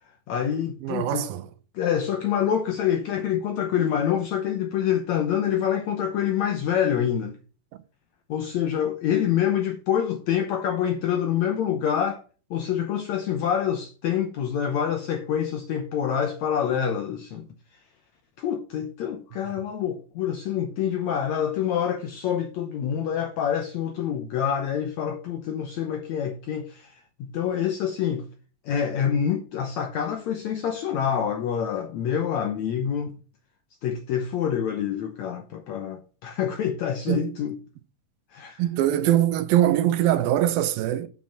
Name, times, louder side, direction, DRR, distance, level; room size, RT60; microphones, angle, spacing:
voice 1, 0.3-1.3 1.7-7.4 8.3-12.2 12.5-17.5 18.4-28.3 28.6-33.1 33.8-37.6 38.3-38.6, left 9 dB, 75° left, 1.6 m, -26 dB
voice 2, 0.8-1.5 37.1-37.3 38.6-41.1, right 12 dB, 85° right, 2.5 m, -22 dB
7.7 x 5.6 x 5.8 m
omnidirectional pair, 4.2 m